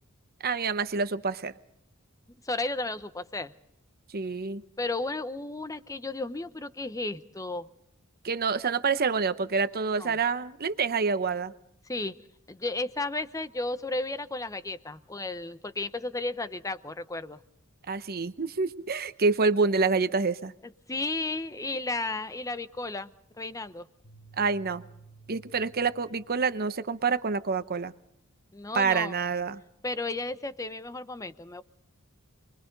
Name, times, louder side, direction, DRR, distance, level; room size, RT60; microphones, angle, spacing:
voice 1, 0.4-1.5 4.1-4.6 8.2-11.5 17.9-20.5 24.4-24.8 25.3-27.9 28.7-29.6, right 4 dB, 45° right, 12 dB, 0.9 m, -27 dB
voice 2, 2.4-3.5 4.8-7.7 10.0-10.2 11.9-12.1 12.5-17.4 20.9-23.1 23.4-23.9 28.5-29.1 29.8-31.6, left 2 dB, 15° left, 12 dB, 0.7 m, -33 dB
sound 1, 24.0-26.5, right 4 dB, 80° left, 5.1 m, -53 dB
29.0 x 22.5 x 4.0 m, 0.79 s
head